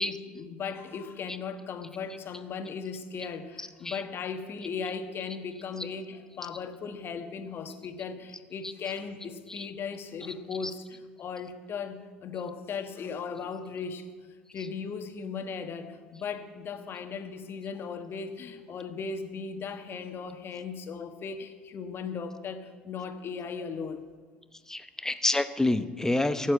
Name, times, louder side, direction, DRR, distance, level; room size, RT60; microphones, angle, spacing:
voice 1, 0.0-14.0 14.3-24.0, left 5 dB, 45° left, 7 dB, 1.4 m, -37 dB
voice 2, 3.6-4.0 9.5-9.7 10.6-10.7 24.7-26.5, left 2 dB, 10° left, 11 dB, 0.8 m, -28 dB
14.0 x 7.5 x 8.5 m, 1.5 s
hypercardioid pair, 70°, 6 cm